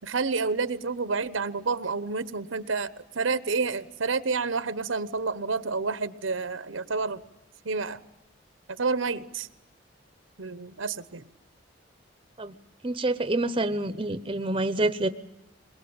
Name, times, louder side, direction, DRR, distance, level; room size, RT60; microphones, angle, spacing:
voice 1, 0.0-7.2 7.6-8.0 8.7-9.5 10.4-11.2, right 4 dB, 85° right, 15 dB, 1.0 m, -29 dB
voice 2, 12.8-15.1, right 2 dB, 25° right, 13 dB, 0.8 m, -27 dB
22.0 x 21.5 x 8.8 m, 0.94 s
head